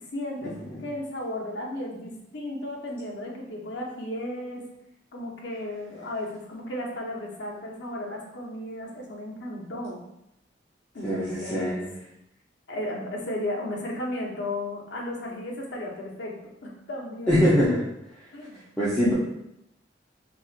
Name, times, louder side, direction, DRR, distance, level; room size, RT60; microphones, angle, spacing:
voice 1, 0.1-4.6 5.1-10.0 10.9-11.9 12.7-16.4 16.6-17.4 18.3-18.6, left 1 dB, 65° left, -2 dB, 0.7 m, -34 dB
voice 2, 11.0-11.8 17.3-17.8 18.8-19.1, equal, 10° left, -11 dB, 0.7 m, -22 dB
4.3 x 2.4 x 2.4 m, 0.82 s
head